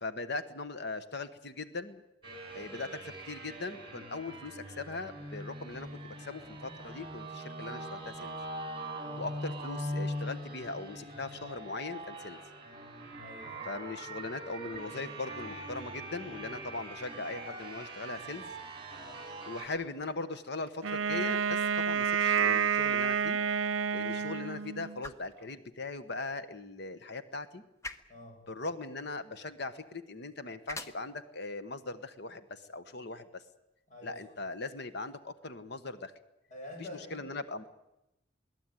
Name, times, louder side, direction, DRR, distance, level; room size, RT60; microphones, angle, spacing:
voice 1, 0.0-2.0 2.5-8.4 9.2-12.4 13.6-18.5 19.4-23.4 23.9-27.6 28.5-33.4 34.0-36.1 36.8-37.6, left 3 dB, 60° left, 12 dB, 1.2 m, -40 dB
sound 1, 2.2-19.7, right 1 dB, 25° right, 5.5 m, -42 dB
voice 2, 13.2-13.7 18.9-19.2 28.1-28.4 33.9-34.2 36.5-37.3, left 1 dB, 40° left, 1 dB, 8.0 m, -48 dB
Wind instrument woodwind instrument, 20.8-25.0, right 7 dB, 80° right, 0.7 m, -29 dB
sound 2, 22.2-34.3, left 2 dB, 15° left, 1.0 m, -52 dB
22.5 x 16.5 x 9.1 m, 0.89 s
head